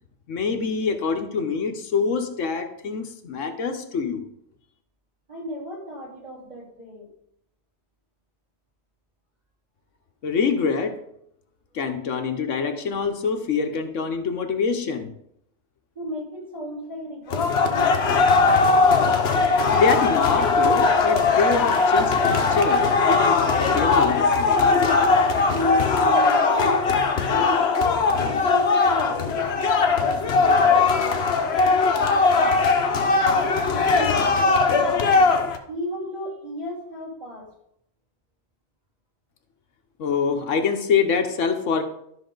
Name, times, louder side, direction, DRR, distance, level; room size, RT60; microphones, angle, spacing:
voice 1, 0.3-4.3 10.2-11.0 11.7-15.1 19.5-24.6 40.0-41.8, left 5 dB, 85° left, 6 dB, 1.3 m, -25 dB
voice 2, 5.3-7.1 15.9-18.4 25.5-26.8 27.3-27.7 28.1-31.2 31.6-32.8 33.1-35.4 35.7-37.5, equal, 35° right, -4 dB, 3.3 m, -34 dB
sound 1, 17.3-35.6, left 4 dB, 60° left, 1.1 m, -19 dB
12.5 x 5.8 x 3.9 m, 0.74 s
omnidirectional pair, 1.3 m